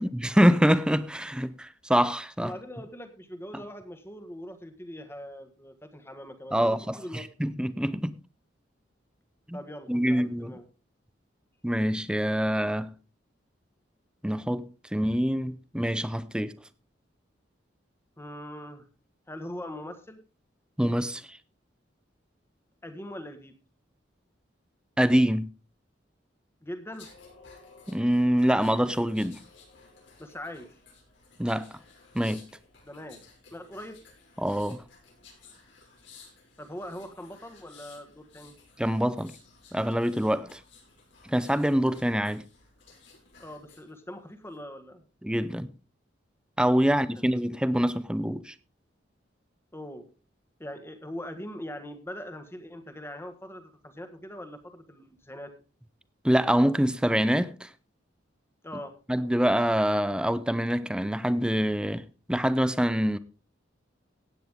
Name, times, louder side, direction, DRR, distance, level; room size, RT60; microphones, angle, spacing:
voice 1, 0.0-2.5 3.5-3.6 6.5-8.2 9.5-9.6 9.9-10.6 11.6-12.9 14.2-14.6 14.9-16.5 20.8-21.4 25.0-25.5 27.9-29.4 31.4-31.7 32.1-32.4 34.4-34.8 38.8-39.3 39.7-40.6 41.2-42.5 45.2-45.7 46.6-48.5 56.2-57.7 59.1-63.2, equal, 5° right, 0.6 m, -25 dB
voice 2, 2.4-7.2 9.5-10.7 18.2-18.8 19.3-20.2 22.8-23.6 26.6-27.1 30.2-30.8 32.8-33.2 33.5-34.0 36.6-38.6 43.4-45.0 46.8-47.2 49.7-50.1 50.6-55.5 58.6-59.0, equal, 15° left, 1.7 m, -41 dB
sound 1, 26.9-43.9 44.3-44.6, left 4 dB, 75° left, 6.5 m, -55 dB
16.0 x 9.3 x 3.7 m
head